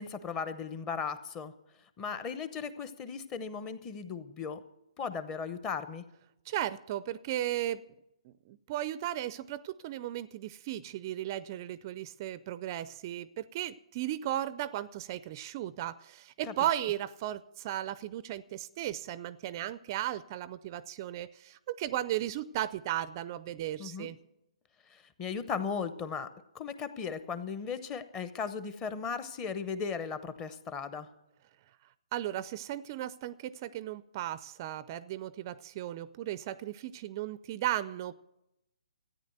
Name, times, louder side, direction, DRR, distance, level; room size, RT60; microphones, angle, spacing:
voice 1, 0.0-1.5 2.0-4.6 5.0-6.0 16.4-16.7 23.8-24.1 24.9-26.3 26.5-31.1, left 6 dB, 20° left, 12 dB, 0.8 m, -37 dB
voice 2, 6.5-7.8 8.3-24.2 32.1-38.2, right 13 dB, 30° right, 17 dB, 0.4 m, -36 dB
13.5 x 9.5 x 7.8 m, 0.86 s
hypercardioid pair, 155°, 4 cm